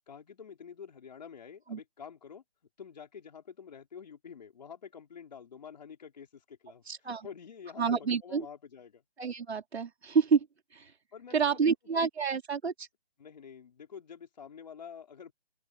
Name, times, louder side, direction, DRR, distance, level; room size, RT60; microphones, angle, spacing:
voice 1, 0.1-2.4 2.8-9.0 11.1-11.7 13.2-15.3, left 7 dB, 40° left, 5.0 m, -48 dB
voice 2, 6.9-7.3 7.8-8.5 9.2-10.5 10.7-10.9 11.3-12.9, right 6 dB, 90° right, 3.1 m, -28 dB
open air
hypercardioid pair, 180°, 31 cm